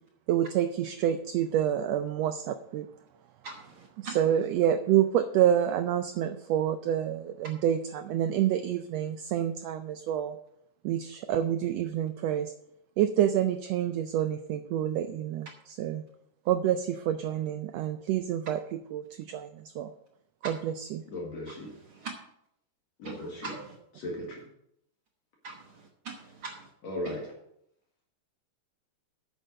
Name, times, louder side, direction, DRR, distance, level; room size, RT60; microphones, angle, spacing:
voice 1, 0.3-2.9 4.0-10.4 10.8-12.5 13.0-16.0 16.5-19.9 20.4-21.0, right 10 dB, 90° right, 9 dB, 1.4 m, -28 dB
voice 2, 3.4-4.2 20.4-20.5 21.5-22.1 23.0-23.8 25.4-26.7 27.0-27.1, right 4 dB, 60° right, 1 dB, 1.5 m, -42 dB
voice 3, 21.1-21.7 23.0-23.5 24.0-24.4 26.8-27.3, left 1 dB, 60° left, -1 dB, 2.9 m, -36 dB
9.0 x 6.7 x 6.3 m, 0.75 s
omnidirectional pair, 3.6 m